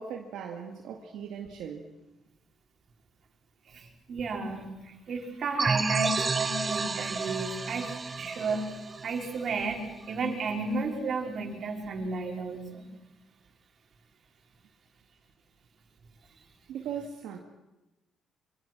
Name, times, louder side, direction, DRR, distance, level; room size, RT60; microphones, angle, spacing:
voice 1, 0.0-1.9 16.7-17.4, right 7 dB, 85° right, 1 dB, 2.1 m, -38 dB
voice 2, 3.7-8.6 9.0-9.8 10.1-12.9, right 3 dB, 55° right, 1 dB, 5.2 m, -33 dB
sound 1, 5.6-10.0, right 4 dB, 30° right, 0.9 m, -31 dB
26.0 x 24.5 x 6.2 m, 1.0 s
cardioid pair, 90°, 0 cm